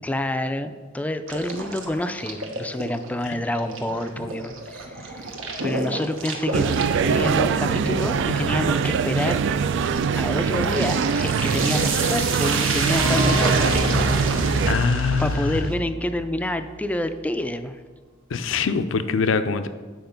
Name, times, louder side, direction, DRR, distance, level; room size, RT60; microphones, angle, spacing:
voice 1, 0.0-5.2 5.6-9.4 10.1-13.7 14.3-14.4 15.2-17.8, left 1 dB, 5° left, 9 dB, 0.4 m, -28 dB
sound 1, 1.3-15.7, right 3 dB, 85° right, 1.1 m, -30 dB
sound 2, 6.5-14.8, right 6 dB, 65° right, 0.3 m, -23 dB
sound 3, 13.0-16.5, equal, 50° right, 1.6 m, -26 dB
voice 2, 14.7-15.7 18.3-19.7, left 5 dB, 70° left, 11 dB, 0.5 m, -24 dB
8.0 x 4.8 x 5.1 m, 1.4 s
head